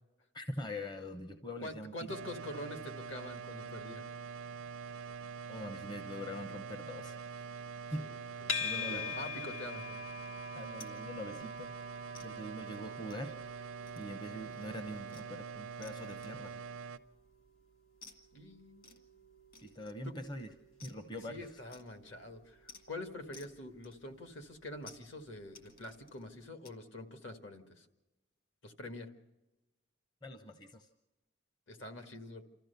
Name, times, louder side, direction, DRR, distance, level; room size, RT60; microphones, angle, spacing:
voice 1, 0.3-1.9 5.5-7.4 7.9-9.2 10.5-11.7 12.2-13.7 13.9-16.6 19.6-20.5 20.8-21.6 30.2-30.9, equal, 20° left, 7 dB, 0.7 m, -43 dB
voice 2, 1.6-4.1 8.0-10.1 18.3-18.9 20.0-20.1 21.3-27.9 28.6-29.1 31.7-32.4, left 1 dB, 60° left, 6 dB, 1.7 m, -46 dB
sound 1, 2.1-17.0, right 5 dB, 80° right, 0.6 m, -45 dB
sound 2, 8.5-25.7, left 5 dB, 75° left, 1.8 m, -47 dB
sound 3, 10.8-11.0 11.4-11.5 12.1-12.3 13.1-13.4 13.9-14.2 14.5-14.7 15.1-15.3 15.8-16.0 16.2-16.7 18.0-18.2 18.8-19.1 19.5-20.1 20.8-21.0 21.7-22.1 22.7-22.9 23.3-23.6 23.8-24.3 24.8-25.1 25.5-26.2 26.6-26.8, left 4 dB, 45° left, 1.8 m, -56 dB
28.0 x 13.5 x 6.8 m, 1.1 s
head